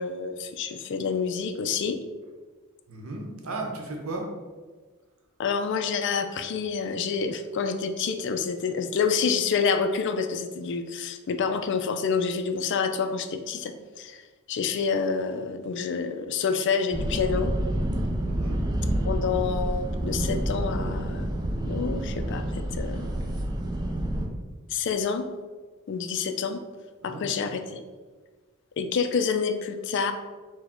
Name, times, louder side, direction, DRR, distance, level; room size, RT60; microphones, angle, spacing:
voice 1, 0.0-2.0 5.4-14.2 14.5-17.5 19.0-21.2 21.7-23.1 24.7-25.3 25.9-26.6 27.0-27.8 28.8-30.1, left 5 dB, 55° left, 8 dB, 0.3 m, -28 dB
voice 2, 2.9-4.3 18.2-18.6 27.0-27.5, right 2 dB, 70° right, 0 dB, 0.8 m, -35 dB
sound 1, 16.9-24.3, right 1 dB, 20° right, 0.4 m, -28 dB
4.3 x 2.2 x 4.3 m, 1.4 s
head